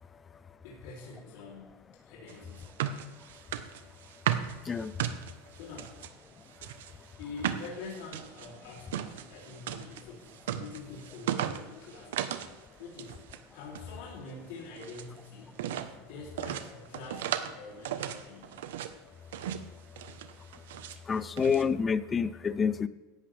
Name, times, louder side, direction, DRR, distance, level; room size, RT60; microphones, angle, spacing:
voice 1, 0.6-2.8 5.5-6.0 7.2-10.3 10.6-12.5 12.8-13.2 13.5-15.6 16.0-18.6, left 4 dB, 65° left, -4 dB, 3.2 m, -46 dB
sound 1, 2.3-6.1 6.5-12.6 12.8-13.4 13.7-15.1 15.5-15.9 16.4-17.5 17.8-18.9 19.3-19.7 20.0-21.0 21.4-21.6, right 10 dB, 85° right, 0.9 m, -36 dB
voice 2, 21.1-22.9, left 6 dB, 15° left, 16 dB, 0.5 m, -28 dB
17.0 x 12.0 x 3.4 m, 1.1 s
supercardioid pair, 150°, 0 cm